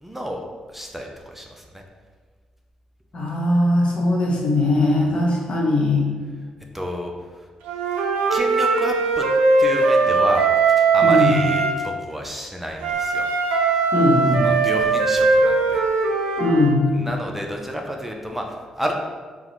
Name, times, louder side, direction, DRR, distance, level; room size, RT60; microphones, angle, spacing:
voice 1, 0.0-0.4 0.7-1.8 6.7-7.4 8.3-9.3 9.6-13.3 14.4-15.8 16.9-18.9, equal, 10° right, 1 dB, 0.4 m, -30 dB
voice 2, 3.1-6.0 11.0-11.4 13.9-14.5 16.4-16.9, left 2 dB, 50° left, -3 dB, 0.9 m, -19 dB
Wind instrument woodwind instrument, 7.7-11.8 12.8-16.7, right 4 dB, 85° right, 0.3 m, -19 dB
2.8 x 2.1 x 4.0 m, 1.5 s
hypercardioid pair, 45°, 2 cm